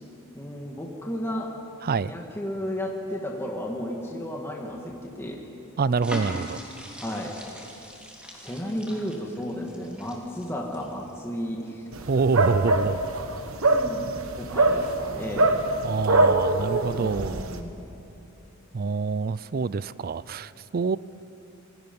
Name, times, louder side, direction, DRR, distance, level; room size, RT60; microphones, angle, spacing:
voice 1, 0.3-1.5 2.1-5.5 7.0-7.4 8.4-11.8 13.7-15.6 17.0-17.8, equal, 10° left, -1 dB, 1.8 m, -33 dB
voice 2, 1.8-2.1 5.8-6.6 12.1-13.0 15.8-17.5 18.7-21.0, right 4 dB, 45° right, 18 dB, 0.4 m, -26 dB
sound 1, 6.0-11.4 11.8-12.0, equal, 5° right, 3.1 m, -41 dB
sound 2, 11.9-17.6, right 2 dB, 70° right, 1.3 m, -24 dB
27.5 x 21.0 x 5.4 m, 2.8 s
head